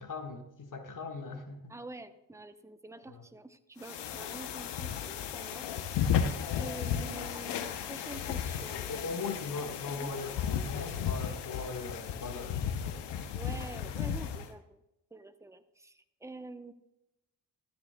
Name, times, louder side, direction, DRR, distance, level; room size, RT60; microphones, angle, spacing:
voice 1, 0.0-1.7 3.1-3.2 8.7-13.1 13.5-13.9, left 4 dB, 50° left, 5 dB, 1.6 m, -40 dB
voice 2, 1.7-5.6 6.6-8.9 10.0-10.1 13.3-14.8 15.1-16.7, right 2 dB, 5° right, 9 dB, 0.8 m, -47 dB
sound 1, 3.8-14.5, left 8 dB, 85° left, 0.9 m, -34 dB
13.5 x 9.6 x 2.3 m, 0.89 s
supercardioid pair, 45°, 41 cm